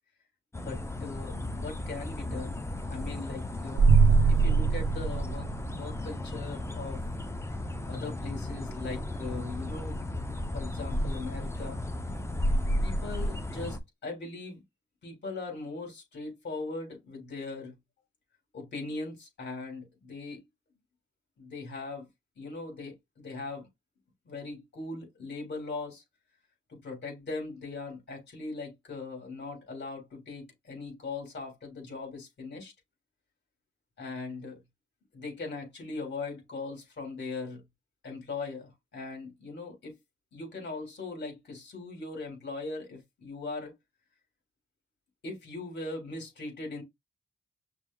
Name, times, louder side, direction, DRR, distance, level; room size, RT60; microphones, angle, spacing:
sound 1, 0.5-13.8, left 1 dB, 15° left, 0.8 m, -34 dB
voice 1, 0.6-2.6 2.9-3.9 4.3-7.0 7.9-10.0 10.5-11.8 12.8-14.6 15.0-17.8 18.5-20.4 21.4-22.1 22.4-23.7 24.2-26.0 26.7-32.7 34.0-34.6 35.1-37.6 38.0-39.9 40.3-43.7 45.2-46.8, left 3 dB, 60° left, 3.4 m, -40 dB
sound 2, 3.8-6.0, right 5 dB, 75° right, 0.8 m, -22 dB
6.0 x 2.1 x 3.8 m
cardioid pair, 75°, 20 cm